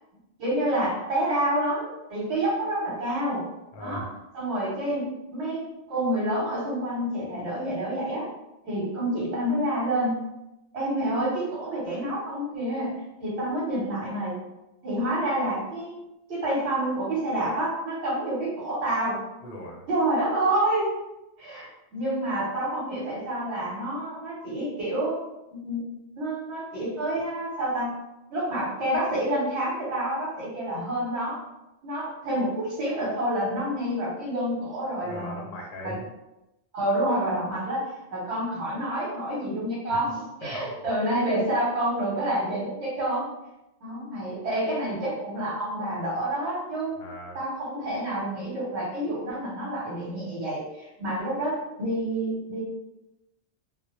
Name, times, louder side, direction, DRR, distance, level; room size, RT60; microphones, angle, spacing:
voice 1, 0.4-3.5 3.8-4.0 4.3-8.2 8.6-10.2 10.7-12.9 13.2-14.4 14.8-16.0 16.3-19.2 19.9-21.0 21.4-25.1 25.5-25.8 26.2-27.9 28.3-31.4 31.8-35.4 35.8-35.9 36.7-43.3 43.8-46.9 47.3-52.6, right 1 dB, 75° right, -7 dB, 1.0 m, -28 dB
voice 2, 3.7-4.1 19.4-19.8 35.0-36.1 39.9-40.0 40.4-40.7 47.0-47.4, left 1 dB, 60° left, -2 dB, 0.7 m, -39 dB
2.1 x 2.0 x 2.9 m, 0.94 s
omnidirectional pair, 1.1 m